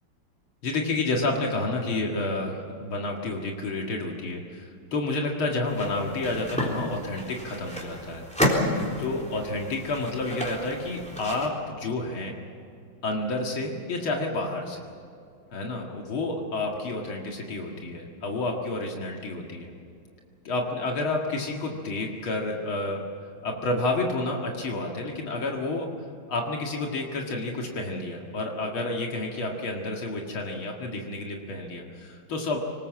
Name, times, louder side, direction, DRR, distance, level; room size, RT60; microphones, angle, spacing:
voice 1, 0.6-8.2 9.0-12.4 13.0-14.8 15.5-19.7 20.4-23.0 23.4-25.9 26.3-32.6, left 2 dB, 80° left, 0 dB, 2.8 m, -30 dB
sound 1, 5.7-11.5, left 1 dB, 5° left, 3.8 m, -31 dB
24.0 x 20.0 x 7.5 m, 2.5 s
omnidirectional pair, 2.2 m